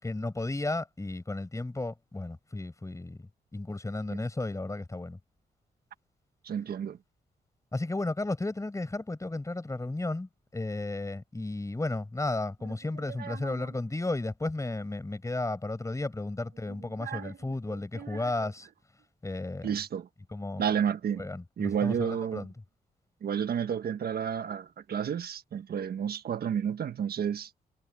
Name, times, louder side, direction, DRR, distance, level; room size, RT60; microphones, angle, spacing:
voice 1, 0.0-3.2 3.5-5.2 7.7-18.7 19.2-19.7 20.3-20.6 21.2-22.5, left 2 dB, 20° left, 6.6 m, -34 dB
voice 2, 6.4-7.0 13.1-13.6 17.0-17.3 17.7-18.2 19.6-20.1 20.6-21.3 21.6-22.5 23.2-27.5, right 8 dB, 70° right, 1.4 m, -31 dB
cardioid pair, 85°, 17 cm